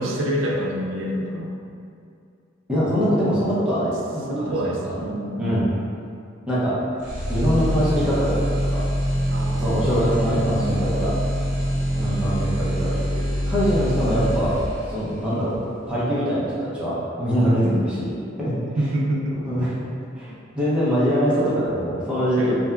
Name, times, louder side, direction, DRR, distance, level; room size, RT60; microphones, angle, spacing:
voice 1, 0.0-1.5 4.3-5.5 9.3-9.8 11.1-11.2 17.4-17.8 18.6-19.4 22.4-22.5, right 1 dB, 75° right, -2 dB, 0.4 m, -27 dB
voice 2, 2.7-5.0 5.4-5.6 6.5-6.8 7.3-8.9 9.6-11.1 11.9-18.9 19.4-19.7 20.2-22.5, equal, 5° right, -10 dB, 0.6 m, -23 dB
sound 1, 7.0-15.0, equal, 55° left, 1.4 m, -24 dB
2.7 x 2.2 x 2.3 m, 2.4 s
head